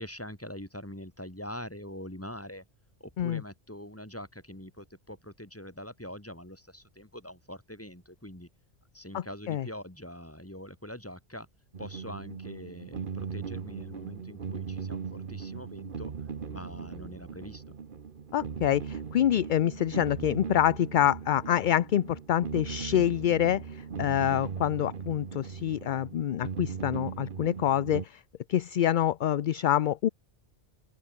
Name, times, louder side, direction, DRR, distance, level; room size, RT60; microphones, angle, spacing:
voice 1, 0.0-2.6 3.0-8.5 8.9-11.5 11.8-16.1 16.5-17.6, equal, 10° left, 4.4 m, -43 dB
voice 2, 9.1-9.7 18.3-28.2 28.5-30.1, left 11 dB, 55° left, 0.6 m, -26 dB
sound 1, 11.7-28.1, right 6 dB, 50° right, 1.3 m, -39 dB
open air
omnidirectional pair, 1.1 m